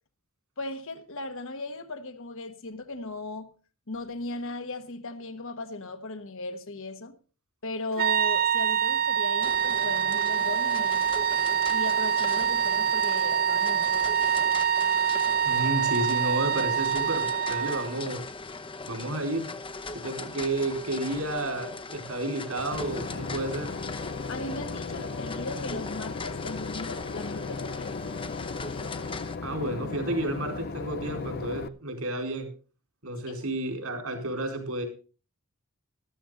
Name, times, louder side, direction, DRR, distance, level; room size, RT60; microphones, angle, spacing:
voice 1, 0.6-3.5 3.9-7.2 7.6-11.1 11.7-14.1 24.3-27.9 33.3-33.4, left 2 dB, 60° left, 1.3 m, -37 dB
sound 1, 8.0-18.0, right 8 dB, 40° right, 0.7 m, -25 dB
sound 2, 9.4-29.4, left 3 dB, 25° left, 0.9 m, -40 dB
voice 2, 15.4-18.2 18.8-19.5 19.9-23.7 29.4-32.5 33.0-34.8, right 1 dB, 70° right, 4.4 m, -31 dB
Boat Water vehicle / Engine, 22.7-31.7, left 4 dB, 45° left, 0.6 m, -36 dB
13.5 x 13.0 x 3.8 m
head